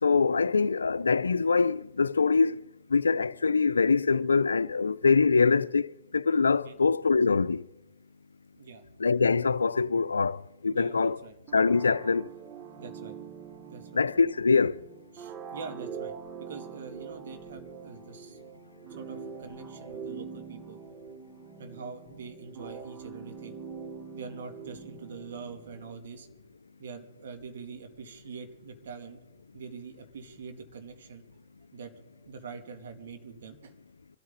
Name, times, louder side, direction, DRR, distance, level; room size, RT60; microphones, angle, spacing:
voice 1, 0.0-2.6 2.9-7.7 9.0-11.2 11.5-12.3 13.9-14.8, left 4 dB, 85° left, 0.5 m, -24 dB
voice 2, 8.5-8.8 10.7-11.4 12.8-13.2 13.7-14.0 15.1-16.1 16.4-18.4 18.9-20.8 21.6-23.6 24.1-26.3 26.8-29.2 29.5-31.2 31.7-31.9 32.3-33.7, right 5 dB, 65° right, 2.7 m, -44 dB
sound 1, 11.5-26.0, right 6 dB, 30° right, 1.4 m, -44 dB
25.0 x 13.5 x 4.0 m
hypercardioid pair, 115°, 0 cm